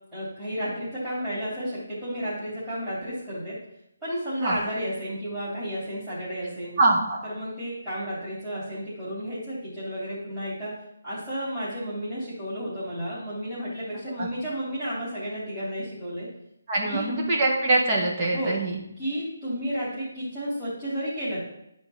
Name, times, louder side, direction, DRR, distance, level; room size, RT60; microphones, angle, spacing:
voice 1, 0.1-3.6 4.0-6.8 7.2-10.7 11.0-16.3 16.8-17.1 18.3-18.6 19.0-21.4, equal, 5° right, -16 dB, 3.0 m, -32 dB
voice 2, 6.8-7.2 14.2-14.3 16.7-18.8, right 2 dB, 25° right, -2 dB, 1.7 m, -23 dB
10.5 x 4.5 x 4.4 m, 0.80 s
hypercardioid pair, 165°, 0 cm